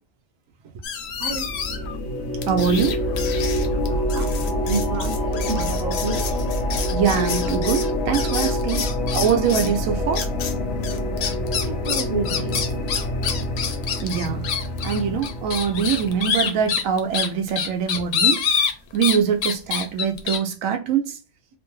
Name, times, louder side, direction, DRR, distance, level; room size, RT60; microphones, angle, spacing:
sound 1, 0.8-1.9 2.4-9.8 10.1-10.5 10.8-19.2 19.4-20.4, left 7 dB, 65° left, 0.8 m, -27 dB
sound 2, 1.1-16.5, left 1 dB, 85° left, 1.1 m, -26 dB
voice 1, 1.2-1.5 3.9-6.3 11.6-12.6 17.5-17.6, right 4 dB, 60° right, 0.4 m, -30 dB
voice 2, 2.5-3.0 6.9-8.9 9.1-10.3 14.0-14.5 14.8-18.6 18.9-21.2, right 7 dB, 80° right, 1.0 m, -23 dB
3.0 x 2.2 x 3.0 m
omnidirectional pair, 1.4 m